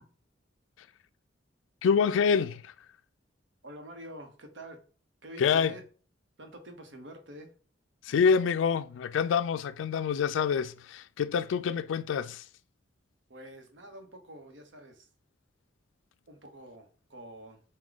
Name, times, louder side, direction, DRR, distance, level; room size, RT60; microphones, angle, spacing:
voice 1, 1.8-2.7 5.4-5.7 8.0-12.4, left 6 dB, 85° left, 0.3 m, -26 dB
voice 2, 3.6-4.8 5.2-5.8 6.4-7.5 13.3-15.1 16.3-17.6, right 1 dB, 75° right, 1.0 m, -47 dB
4.6 x 2.2 x 3.9 m
head